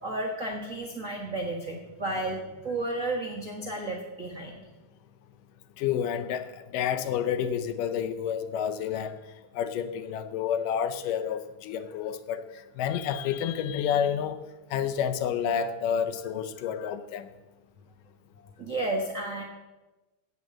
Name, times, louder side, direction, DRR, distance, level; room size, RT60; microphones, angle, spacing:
voice 1, 0.0-4.7 18.6-19.4, right 2 dB, 85° right, 0 dB, 0.7 m, -32 dB
voice 2, 5.8-6.5 6.7-9.2 9.5-12.4 12.8-14.4 14.7-17.3, left 8 dB, 85° left, 10 dB, 2.4 m, -29 dB
16.0 x 5.4 x 7.3 m, 1.1 s
omnidirectional pair, 3.7 m